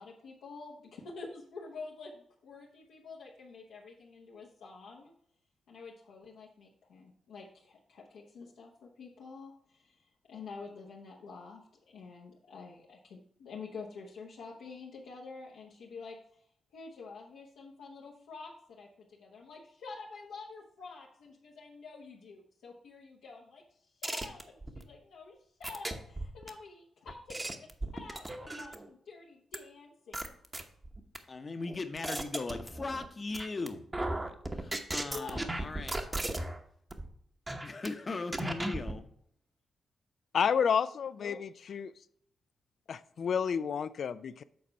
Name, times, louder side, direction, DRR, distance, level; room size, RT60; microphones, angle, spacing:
voice 1, 0.0-5.1 5.7-16.2 16.7-23.6 23.9-25.3 25.6-27.7 27.9-30.2 35.1-35.5 36.0-36.5 41.2-41.4, left 4 dB, 85° left, -4 dB, 1.0 m, -48 dB
sound 1, 24.0-24.8 25.6-26.5 27.1-28.9 29.5-29.6 30.1-31.2 31.7-33.1 33.3-33.7 33.9-36.6 36.9-37.1 37.5-37.9 38.3-39.0, right 1 dB, 25° right, 0.9 m, -36 dB
voice 2, 31.3-36.1 37.6-39.0, left 3 dB, 40° left, 8 dB, 0.8 m, -39 dB
voice 3, 40.3-41.9 42.9-44.4, left 7 dB, 65° left, 13 dB, 0.3 m, -30 dB
7.6 x 4.0 x 5.6 m, 0.67 s
cardioid pair, 65°, 0 cm